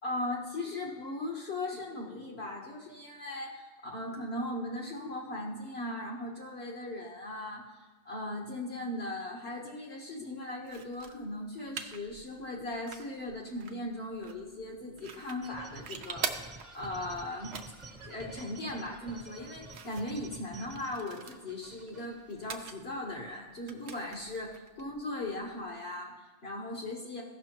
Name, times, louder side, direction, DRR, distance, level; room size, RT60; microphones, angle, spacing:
voice 1, 0.0-17.6 18.1-27.2, left 1 dB, 55° left, -2 dB, 1.4 m, -38 dB
sound 1, 10.6-25.8, right 7 dB, 65° right, 0.9 m, -46 dB
sound 2, 15.4-22.8, right 3 dB, 40° right, 1.1 m, -50 dB
15.0 x 6.2 x 3.0 m, 1.3 s
omnidirectional pair, 1.3 m